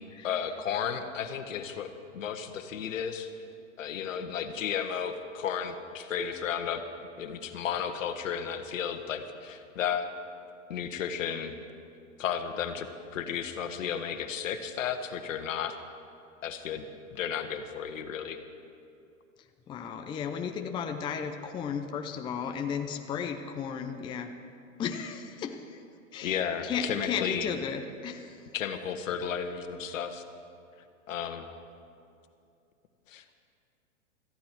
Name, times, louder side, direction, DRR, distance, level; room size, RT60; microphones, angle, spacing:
voice 1, 0.2-3.3 3.8-6.8 7.2-10.1 10.7-11.5 12.2-15.8 16.4-16.8 17.1-18.4 26.2-27.5 28.5-30.2 31.1-31.5 33.1-33.4, left 8 dB, 70° left, 8 dB, 1.4 m, -33 dB
voice 2, 19.7-24.3 24.8-25.8 26.1-28.4, left 7 dB, 10° left, 6 dB, 0.5 m, -34 dB
18.0 x 14.0 x 4.6 m, 2.6 s
hypercardioid pair, 125°, 40 cm